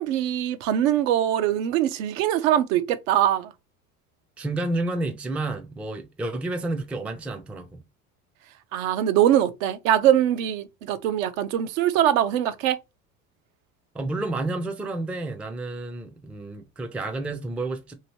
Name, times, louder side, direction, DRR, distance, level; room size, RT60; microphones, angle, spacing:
voice 1, 0.0-3.5 8.7-12.8, right 11 dB, 65° right, 0.6 m, -22 dB
voice 2, 4.4-7.8 13.9-17.9, right 2 dB, 5° right, 0.4 m, -30 dB
2.9 x 2.7 x 2.9 m
hypercardioid pair, 80°, 43 cm